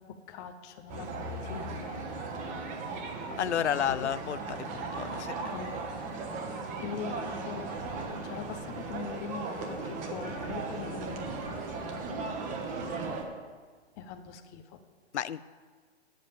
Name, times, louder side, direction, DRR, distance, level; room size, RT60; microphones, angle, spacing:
voice 1, 0.0-2.0 3.9-4.1 5.5-5.7 6.8-12.2 14.0-14.8, left 7 dB, 15° left, 6 dB, 0.4 m, -42 dB
sound 1, 0.9-13.2, right 3 dB, 20° right, 1.1 m, -37 dB
voice 2, 3.4-5.4 15.1-15.4, left 9 dB, 85° left, 17 dB, 0.5 m, -31 dB
sound 2, 3.6-4.3 5.0-5.9 7.3-7.6 8.3-8.4, right 3 dB, 50° right, 2.5 m, -56 dB
9.0 x 7.6 x 6.8 m, 1.5 s
hypercardioid pair, 135°, 34 cm